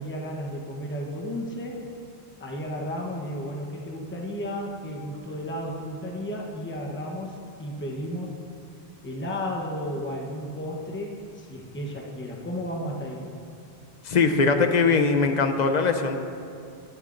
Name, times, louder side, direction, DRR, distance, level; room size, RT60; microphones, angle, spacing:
voice 1, 0.0-1.8 2.4-8.4 9.0-13.2, equal, 10° left, -1 dB, 0.9 m, -33 dB
voice 2, 14.0-16.2, left 4 dB, 50° left, 7 dB, 0.7 m, -21 dB
20.0 x 7.3 x 2.6 m, 2.5 s
omnidirectional pair, 1.1 m